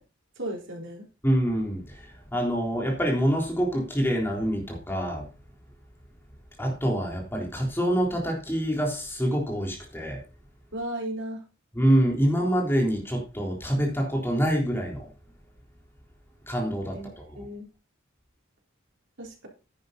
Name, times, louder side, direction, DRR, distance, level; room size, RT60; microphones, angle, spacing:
voice 1, 0.4-1.1 10.7-11.4 16.9-17.1 17.4-17.7 19.2-19.5, right 1 dB, 65° right, 1 dB, 4.0 m, -35 dB
voice 2, 1.2-5.3 6.6-10.2 11.7-15.1 16.5-17.4, equal, 10° left, 0 dB, 3.7 m, -26 dB
10.5 x 9.3 x 4.0 m, 0.31 s
head